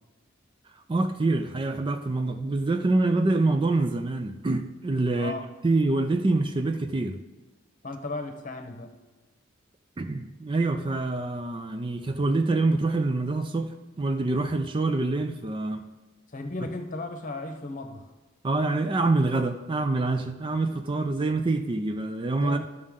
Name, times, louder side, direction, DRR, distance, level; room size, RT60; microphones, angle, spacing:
voice 1, 0.9-5.3 5.6-7.2 10.0-15.8 18.4-22.7, right 2 dB, 25° right, 7 dB, 0.4 m, -26 dB
voice 2, 5.1-5.5 7.8-8.9 16.3-18.0 22.3-22.7, left 2 dB, 40° left, 6 dB, 0.9 m, -35 dB
13.0 x 6.4 x 3.7 m, 1.2 s
head